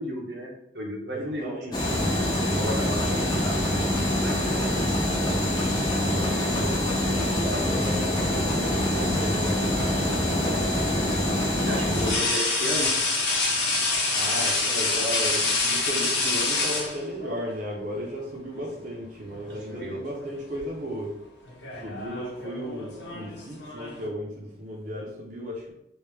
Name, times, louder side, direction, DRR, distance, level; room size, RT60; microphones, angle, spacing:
voice 1, 0.0-1.6 1.8-2.1 2.4-3.6 4.2-5.1 11.5-12.9 19.7-20.0, equal, 80° right, -1 dB, 0.9 m, -34 dB
voice 2, 1.1-1.8 2.7-3.2 4.5-5.0 6.0-11.0 14.1-21.2 21.8-25.7, equal, 50° right, -3 dB, 0.6 m, -35 dB
sound 1, 1.7-12.1, left 1 dB, 25° left, 0.6 m, -25 dB
sound 2, 7.6-8.5 10.2-10.4 11.9-17.4 18.6-18.8 19.2-20.0 20.2-20.6 21.5-24.1, left 3 dB, 85° left, 0.8 m, -27 dB
3.2 x 2.7 x 3.3 m, 0.77 s
head